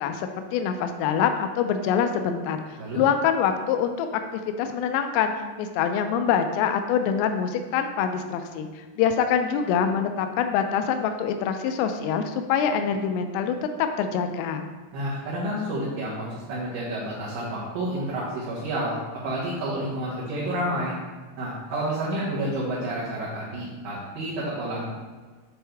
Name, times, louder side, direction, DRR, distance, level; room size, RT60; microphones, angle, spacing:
voice 1, 0.0-2.6 2.9-4.1 4.6-5.3 5.6-8.7 9.0-14.7, left 7 dB, 90° left, 7 dB, 3.2 m, -25 dB
voice 2, 14.9-19.0 19.2-20.9 21.4-24.8, right 1 dB, 65° right, -9 dB, 2.5 m, -29 dB
9.2 x 4.4 x 3.4 m, 1.4 s
omnidirectional pair, 5.7 m